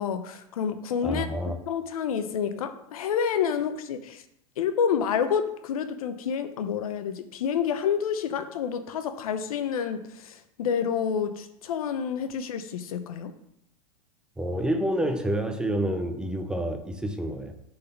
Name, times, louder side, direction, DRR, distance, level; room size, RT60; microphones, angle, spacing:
voice 1, 0.0-1.3 1.7-4.2 4.6-13.3, left 7 dB, 85° left, 0.8 m, -28 dB
voice 2, 1.0-1.6 14.4-17.5, right 1 dB, 5° right, 0.5 m, -28 dB
6.6 x 4.1 x 5.9 m
supercardioid pair, 140°, 18 cm